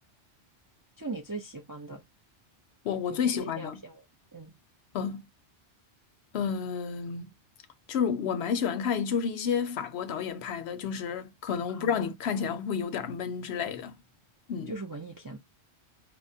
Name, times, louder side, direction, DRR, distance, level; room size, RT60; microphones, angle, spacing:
voice 1, 1.0-2.0 3.1-4.0 4.3-4.5 11.7-12.1 14.7-15.4, right 3 dB, 30° right, 0.3 m, -40 dB
voice 2, 2.8-3.8 4.9-5.2 6.3-7.3 7.9-13.9 14.5-14.8, left 7 dB, 70° left, 0.8 m, -30 dB
4.6 x 2.3 x 2.6 m
omnidirectional pair, 1.2 m